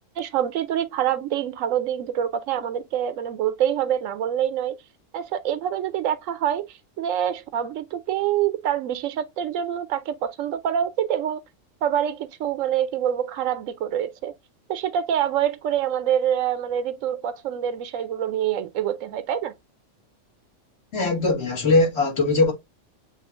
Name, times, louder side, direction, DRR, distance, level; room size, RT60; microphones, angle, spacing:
voice 1, 0.2-4.8 5.1-11.4 11.8-14.3 14.7-19.5, right 10 dB, 85° right, 1.0 m, -26 dB
voice 2, 20.9-22.5, left 3 dB, 55° left, 2.2 m, -20 dB
7.8 x 2.7 x 2.4 m
omnidirectional pair, 1.3 m